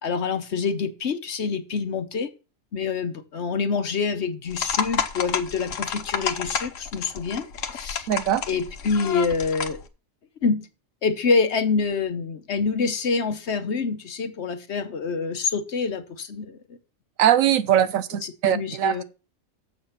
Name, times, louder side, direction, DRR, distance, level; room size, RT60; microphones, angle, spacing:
voice 1, 0.0-2.3 2.7-7.5 7.7-8.1 8.5-9.8 10.4-10.7 11.0-16.6 18.2-19.0, left 4 dB, 55° left, 1.1 m, -26 dB
sound 1, 4.5-9.8, left 7 dB, 70° left, 1.2 m, -30 dB
voice 2, 8.1-8.4 17.2-19.0, right 11 dB, 75° right, 1.0 m, -21 dB
7.3 x 6.8 x 5.7 m
omnidirectional pair, 1.4 m